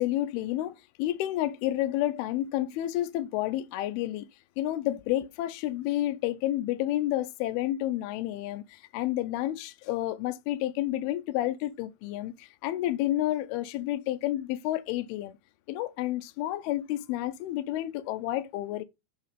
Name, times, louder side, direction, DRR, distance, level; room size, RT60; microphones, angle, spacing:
voice 1, 0.0-4.3 4.6-15.3 15.7-18.8, left 14 dB, 80° left, 2.3 m, -30 dB
6.6 x 4.9 x 5.1 m
omnidirectional pair, 4.8 m